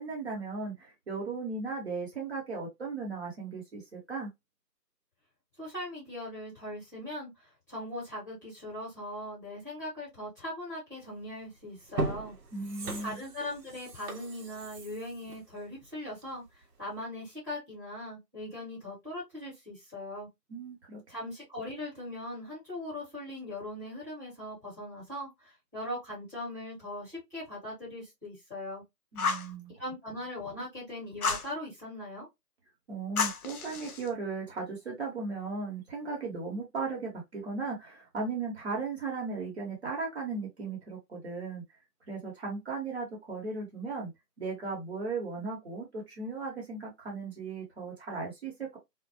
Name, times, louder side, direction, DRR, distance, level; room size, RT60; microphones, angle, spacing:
voice 1, 0.0-4.3 12.5-13.2 20.5-21.0 29.1-29.7 32.9-41.6 42.1-44.1 44.4-48.8, right 4 dB, 40° right, 1.0 m, -36 dB
voice 2, 5.6-12.4 13.0-16.4 16.8-20.3 21.1-28.8 29.8-32.3, left 1 dB, 10° left, 1.0 m, -40 dB
sound 1, 11.2-11.3 11.8-16.5 16.9-17.0, right 2 dB, 70° right, 0.8 m, -38 dB
Fire, 29.2-29.5 31.2-31.5 33.2-34.1, left 4 dB, 60° left, 0.6 m, -31 dB
2.1 x 2.1 x 2.8 m
figure-of-eight pair, 155°, 50 cm